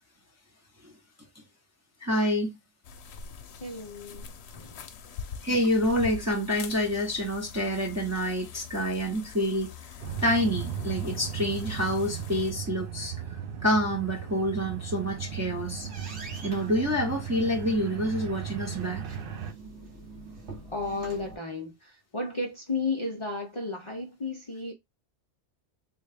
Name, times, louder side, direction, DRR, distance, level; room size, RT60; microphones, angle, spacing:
voice 1, 2.0-2.6 5.4-9.8 10.2-13.1 13.6-15.9 16.4-19.0, equal, 20° right, 0.5 m, -27 dB
sound 1, 2.8-12.5, left 7 dB, 70° left, 0.8 m, -44 dB
voice 2, 3.6-4.2 4.5-4.9 20.7-24.7, left 3 dB, 35° left, 0.5 m, -33 dB
sound 2, 10.0-19.5, right 8 dB, 60° right, 0.7 m, -37 dB
sound 3, 14.9-21.4, right 3 dB, 75° right, 1.2 m, -45 dB
3.5 x 2.2 x 3.2 m
omnidirectional pair, 1.2 m